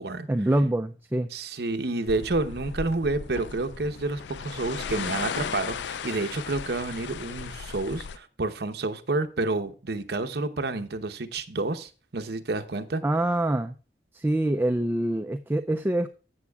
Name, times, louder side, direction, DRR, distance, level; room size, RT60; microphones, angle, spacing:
voice 1, 0.3-1.3 13.0-13.7 14.1-16.1, right 1 dB, 10° right, 8 dB, 0.3 m, -25 dB
voice 2, 1.3-13.0, right 2 dB, 65° right, 8 dB, 0.8 m, -29 dB
sound 1, 2.1-8.2, left 6 dB, 75° left, 0.4 m, -36 dB
15.0 x 7.1 x 2.3 m, 0.35 s
head